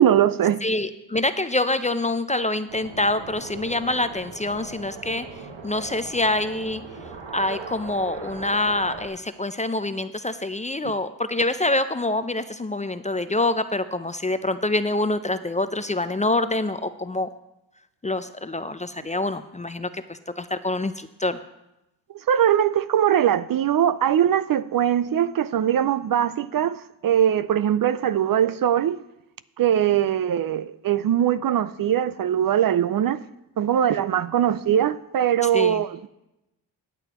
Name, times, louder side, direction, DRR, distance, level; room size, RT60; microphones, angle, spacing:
voice 1, 0.0-0.6 10.8-10.9 22.3-29.0 29.6-33.2 33.6-36.1, right 10 dB, 50° right, 0.5 m, -21 dB
voice 2, 0.6-5.3 5.6-6.8 7.3-17.3 18.0-21.4 35.5-35.8, left 2 dB, 15° left, 0.5 m, -26 dB
sound 1, 2.7-9.1, right 4 dB, 70° right, 1.4 m, -39 dB
19.5 x 6.8 x 3.0 m
supercardioid pair, 50°, 46 cm